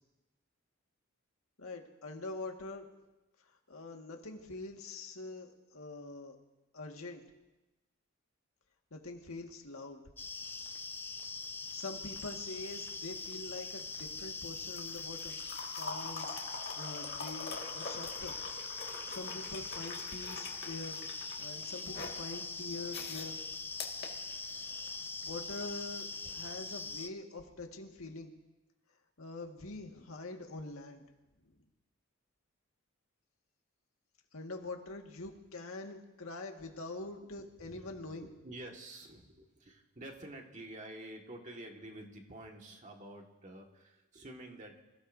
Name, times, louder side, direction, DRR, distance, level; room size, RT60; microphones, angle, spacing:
voice 1, 1.6-2.9 3.5-6.4 6.7-7.2 8.9-10.0 11.7-15.4 15.8-16.3 16.7-18.4 19.0-21.0 21.4-23.5 25.2-26.1 26.3-28.3 29.2-31.0 31.4-31.6 34.3-38.3, left 2 dB, 75° left, 2 dB, 1.8 m, -44 dB
sound 1, 10.2-27.1, left 4 dB, 10° left, 0.4 m, -42 dB
sound 2, 12.6-24.9 26.1-26.3, left 4 dB, 50° left, 2.0 m, -45 dB
voice 2, 37.6-44.8, right 1 dB, 35° right, 1 dB, 1.8 m, -49 dB
26.5 x 16.0 x 2.7 m, 1.0 s
head